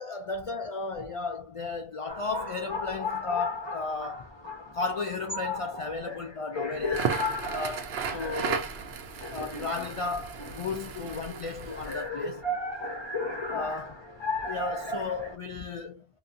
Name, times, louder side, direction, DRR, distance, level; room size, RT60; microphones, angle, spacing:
voice 1, 0.0-4.3 4.7-7.1 7.5-8.7 9.3-12.4 13.5-13.9 14.5-16.1, left 4 dB, 55° left, 0.3 m, -34 dB
sound 1, 2.1-15.4, left 2 dB, 30° left, 0.7 m, -35 dB
Crackle, 6.8-12.1, right 6 dB, 85° right, 0.9 m, -35 dB
2.8 x 2.4 x 2.5 m
omnidirectional pair, 1.0 m